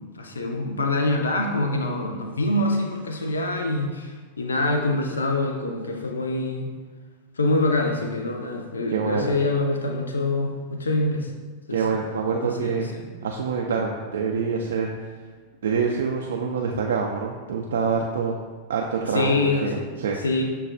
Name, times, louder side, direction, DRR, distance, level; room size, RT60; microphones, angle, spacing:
voice 1, 0.1-6.7 7.4-11.3 11.7-12.0 12.4-13.0 19.1-19.8 20.2-20.4, left 2 dB, 75° left, 3 dB, 0.4 m, -25 dB
voice 2, 8.9-9.3 11.7-12.9 13.2-14.9 15.6-18.4 18.7-20.2, right 5 dB, 65° right, 0 dB, 0.3 m, -26 dB
6.8 x 2.3 x 2.4 m, 1.4 s
figure-of-eight pair, 90°, 0 cm